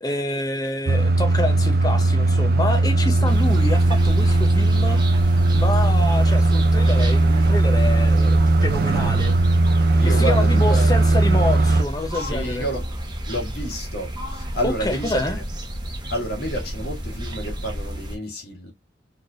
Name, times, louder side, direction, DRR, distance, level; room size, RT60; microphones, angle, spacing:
voice 1, 0.0-5.0 5.5-9.3 10.0-12.6 14.6-15.4, left 1 dB, 20° left, 0.7 m, -27 dB
sound 1, 0.9-11.8, right 2 dB, 50° right, 0.5 m, -18 dB
sound 2, 3.2-18.2, equal, 25° right, 0.9 m, -31 dB
voice 2, 10.0-10.9 12.1-12.9 13.3-15.4 16.1-18.7, equal, 55° left, 1.9 m, -30 dB
4.2 x 3.3 x 2.5 m
head